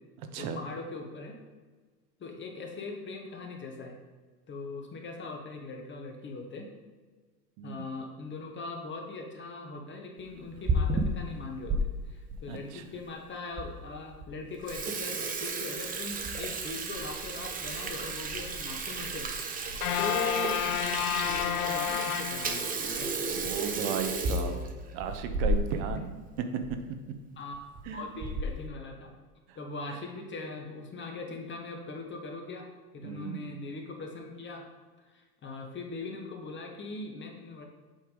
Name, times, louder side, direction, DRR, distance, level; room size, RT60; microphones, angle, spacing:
voice 1, 0.3-1.4 2.2-4.0 4.5-6.7 7.6-22.7 23.0-23.3 24.3-24.6 25.9-26.0 27.4-27.6 27.9-29.1 29.5-32.7 32.9-34.7 35.0-37.6, left 3 dB, 25° left, 2 dB, 1.1 m, -40 dB
voice 2, 7.6-7.9 12.5-12.9 23.3-24.6 24.9-26.1 26.5-26.8 27.9-28.0 29.5-29.6 33.0-33.5, right 7 dB, 50° right, 7 dB, 0.9 m, -35 dB
Water tap faucet / Sink (filling or washing), 10.4-11.8 12.3-12.4 13.1-13.2 13.6-13.7 14.0-14.2 14.5-25.9 26.2-26.3 26.6-26.7 27.5-27.8 28.2-28.6, right 2 dB, 20° right, 0.7 m, -32 dB
sound 1, 19.8-23.1, left 9 dB, 75° left, 0.6 m, -31 dB
7.8 x 3.5 x 4.8 m, 1.4 s
hypercardioid pair, 95°, 45 cm